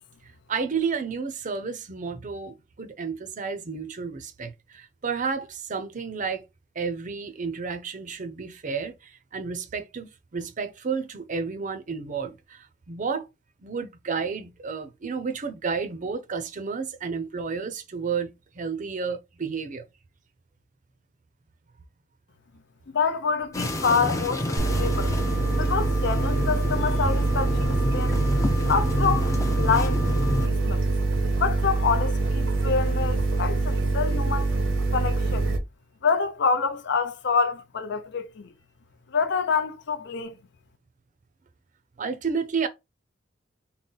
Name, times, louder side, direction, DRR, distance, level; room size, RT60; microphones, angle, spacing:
voice 1, 0.5-6.5 6.8-13.3 13.6-19.8 42.0-42.7, right 5 dB, 40° right, 0.6 m, -31 dB
voice 2, 22.9-25.1 25.6-28.2 28.7-30.0 30.4-30.9 31.4-34.5 34.9-35.5 36.0-38.5 39.1-40.4, left 5 dB, 65° left, 0.5 m, -27 dB
sound 1, 23.5-30.5, left 1 dB, 15° left, 0.5 m, -29 dB
sound 2, 24.6-35.6, right 2 dB, 85° right, 0.8 m, -24 dB
3.9 x 2.1 x 3.8 m
head